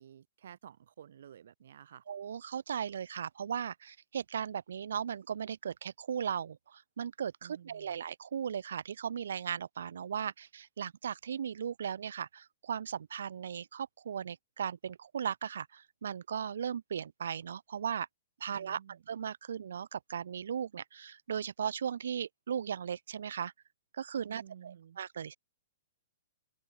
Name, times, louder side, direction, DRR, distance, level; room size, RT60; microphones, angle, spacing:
voice 1, 0.0-2.0 7.4-8.0 18.5-19.0 24.3-25.0, right 9 dB, 60° right, 6.4 m, -53 dB
voice 2, 2.1-18.1 18.4-23.5 23.9-25.4, right 8 dB, 80° right, 2.2 m, -37 dB
open air
hypercardioid pair, 175°, 0 cm